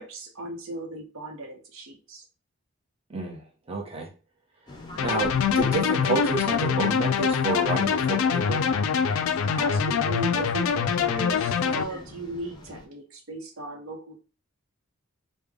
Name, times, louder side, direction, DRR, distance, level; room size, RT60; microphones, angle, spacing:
voice 1, 0.0-2.2 9.5-14.2, right 1 dB, 75° right, 3 dB, 0.7 m, -37 dB
voice 2, 3.1-3.4 3.7-4.1 4.9-8.6, right 3 dB, 25° right, 0 dB, 0.8 m, -30 dB
sound 1, 4.7-12.9, left 2 dB, 20° left, 0.6 m, -43 dB
sound 2, 5.0-11.8, left 6 dB, 75° left, 0.3 m, -24 dB
3.3 x 2.1 x 3.5 m, 0.34 s
head